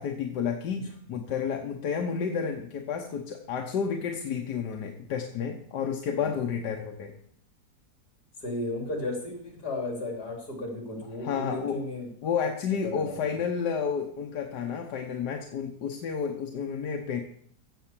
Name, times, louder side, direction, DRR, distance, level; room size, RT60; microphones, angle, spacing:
voice 1, 0.0-7.1 11.2-11.8 12.2-17.2, left 6 dB, 90° left, 4 dB, 1.6 m, -31 dB
voice 2, 8.4-12.1 12.8-13.1, left 2 dB, 70° left, 1 dB, 4.1 m, -34 dB
15.5 x 5.6 x 7.4 m, 0.63 s
omnidirectional pair, 1.7 m